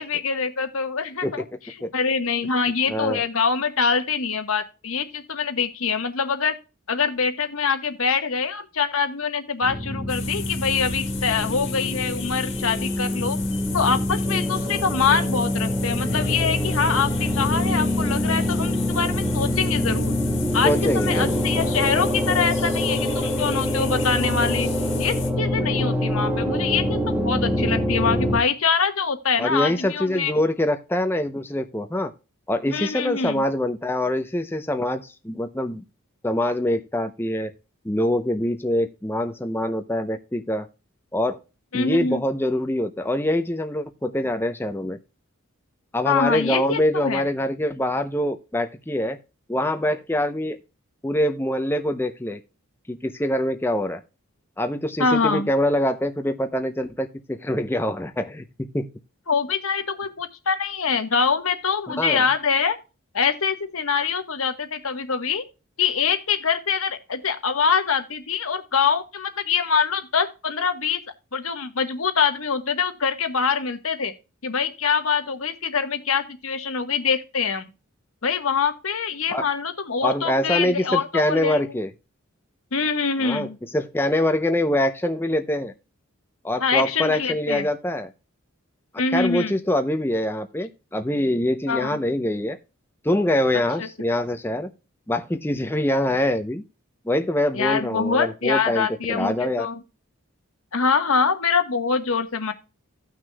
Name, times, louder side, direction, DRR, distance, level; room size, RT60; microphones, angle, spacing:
voice 1, 0.0-1.4 1.9-6.6 6.9-13.4 13.7-20.1 20.5-24.7 25.0-30.3 32.7-33.4 41.7-42.2 46.0-47.2 55.0-55.5 59.3-62.8 63.1-65.4 65.8-71.0 71.3-74.1 74.4-77.7 78.2-81.6 82.7-83.6 86.6-87.7 89.0-89.5 91.7-92.0 93.8-93.9 97.5-99.8 100.7-102.5, left 5 dB, 75° left, 1.2 m, -24 dB
voice 2, 2.9-3.2 20.6-21.4 29.4-32.1 32.5-35.8 36.2-37.5 37.8-40.7 41.1-41.4 41.7-45.0 45.9-49.2 49.5-50.6 51.0-52.4 52.9-54.0 54.6-58.9 62.0-62.2 79.3-79.5 80.0-81.9 83.2-85.7 86.4-88.1 89.1-92.6 93.0-94.7 95.1-96.6 97.1-99.7, left 1 dB, 10° left, 0.6 m, -24 dB
sound 1, 9.6-28.4, left 1 dB, 5° right, 2.0 m, -25 dB
sound 2, 10.1-25.3, left 7 dB, 60° left, 1.7 m, -36 dB
16.5 x 6.1 x 2.2 m
head